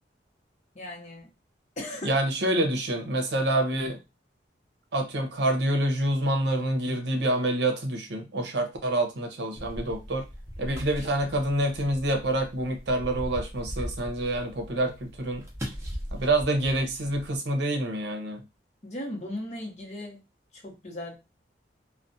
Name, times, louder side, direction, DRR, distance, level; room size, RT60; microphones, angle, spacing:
voice 1, 0.7-1.3 1.8-2.1 18.8-20.2 20.6-21.2, left 1 dB, 40° left, -1 dB, 0.8 m, -37 dB
voice 2, 2.0-4.0 4.9-10.3 10.6-15.4 16.1-18.4, right 1 dB, 70° right, 5 dB, 0.6 m, -27 dB
sound 1, 9.6-17.4, equal, 15° right, 0.6 m, -39 dB
2.3 x 2.2 x 2.6 m, 0.26 s
head